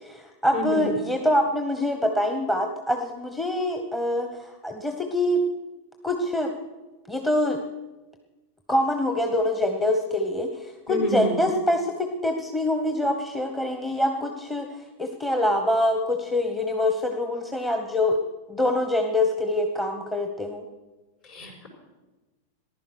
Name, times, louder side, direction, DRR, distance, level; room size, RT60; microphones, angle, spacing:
voice 1, 0.0-5.4 6.0-6.5 7.1-7.6 8.7-18.2 18.5-20.6, left 1 dB, 10° left, 5 dB, 1.1 m, -25 dB
voice 2, 0.5-0.8 10.9-11.3 21.3-21.7, left 1 dB, 40° left, 2 dB, 4.8 m, -28 dB
15.0 x 11.0 x 6.2 m, 1.2 s
figure-of-eight pair, 90°, 0 cm